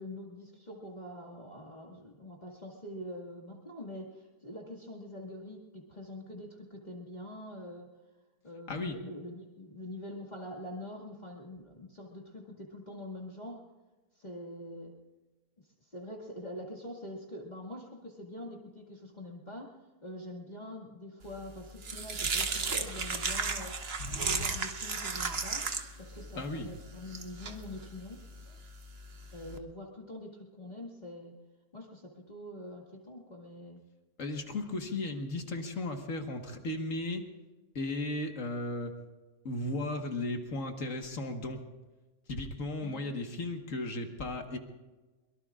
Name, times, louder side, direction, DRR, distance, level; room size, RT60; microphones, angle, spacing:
voice 1, 0.0-7.9 8.4-13.6 14.2-14.9 15.8-19.7 20.0-23.8 24.2-25.7 26.0-28.2 29.3-31.3 31.7-33.8 42.8-43.0, left 1 dB, 30° left, -2 dB, 2.2 m, -44 dB
sound 1, 21.3-29.6, right 4 dB, 45° right, 1.3 m, -35 dB
voice 2, 24.0-24.5 26.4-26.7 34.2-37.3 37.8-38.9 39.5-41.6 42.3-44.6, left 2 dB, 60° left, 4 dB, 1.9 m, -35 dB
23.0 x 22.5 x 2.5 m, 1.2 s
omnidirectional pair, 1.6 m